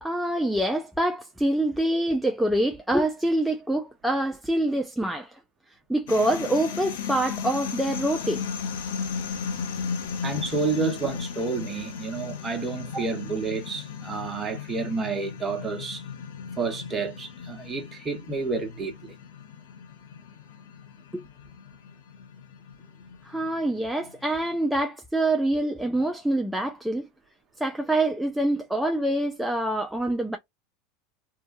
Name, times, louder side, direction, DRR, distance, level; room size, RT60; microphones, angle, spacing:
voice 1, 0.0-5.4 5.9-8.4 12.9-13.1 21.1-21.2 23.2-27.1 27.6-30.4, right 1 dB, ahead, 0.4 m, -25 dB
sound 1, 6.1-24.5, left 6 dB, 85° left, 0.7 m, -36 dB
voice 2, 10.2-16.0 16.6-19.2, right 4 dB, 20° right, 1.0 m, -30 dB
2.7 x 2.2 x 2.6 m
supercardioid pair, 125°, 0 cm